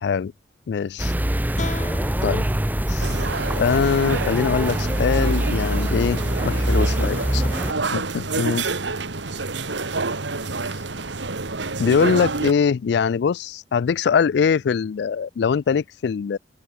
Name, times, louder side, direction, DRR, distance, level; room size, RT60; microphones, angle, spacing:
voice 1, 0.0-0.3 0.7-1.1 2.2-2.4 2.9-3.2 3.6-7.5 7.9-8.6 11.8-16.4, left 6 dB, 65° left, 0.3 m, -22 dB
sound 1, 1.0-7.7, right 1 dB, 10° right, 0.9 m, -24 dB
sound 2, 1.6-4.7, left 3 dB, 40° left, 0.9 m, -39 dB
sound 3, 3.0-12.5, right 3 dB, 80° right, 1.9 m, -28 dB
open air
head